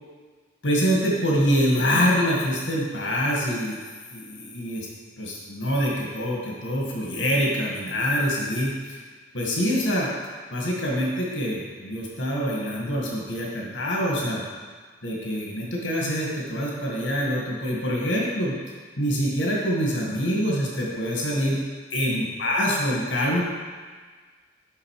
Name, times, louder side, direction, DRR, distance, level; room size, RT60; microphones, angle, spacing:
voice 1, 0.6-3.8 4.1-4.9 5.2-9.0 9.3-10.1 10.5-14.4 15.0-18.6 19.0-21.6 21.9-23.4, equal, 80° left, -3 dB, 2.0 m, -25 dB
8.1 x 6.5 x 4.8 m, 1.5 s
head